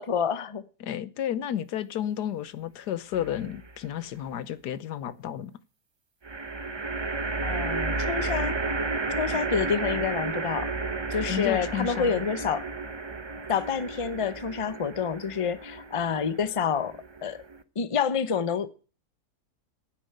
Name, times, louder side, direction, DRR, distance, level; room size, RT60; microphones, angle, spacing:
voice 1, 0.0-0.6 7.4-8.6 9.2-10.7 11.1-12.7 13.5-17.4 17.8-18.7, left 7 dB, 30° left, 0.6 m, -28 dB
voice 2, 0.8-5.5 11.3-12.2, left 10 dB, 90° left, 1.4 m, -32 dB
sound 1, 3.1-3.8 6.2-17.6, right 3 dB, 35° right, 0.4 m, -32 dB
10.0 x 9.4 x 7.9 m
omnidirectional pair, 1.7 m